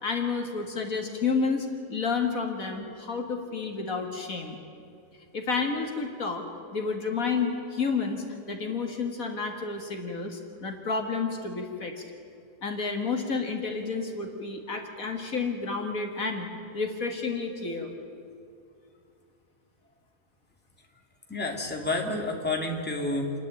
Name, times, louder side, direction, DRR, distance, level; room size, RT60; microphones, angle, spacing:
voice 1, 0.0-4.6 5.3-6.4 6.7-12.0 12.6-16.5 16.7-17.9, left 4 dB, 60° left, 3 dB, 2.2 m, -30 dB
voice 2, 21.3-23.3, left 2 dB, 5° left, 0 dB, 2.1 m, -29 dB
28.5 x 10.5 x 9.0 m, 2.5 s
omnidirectional pair, 1.7 m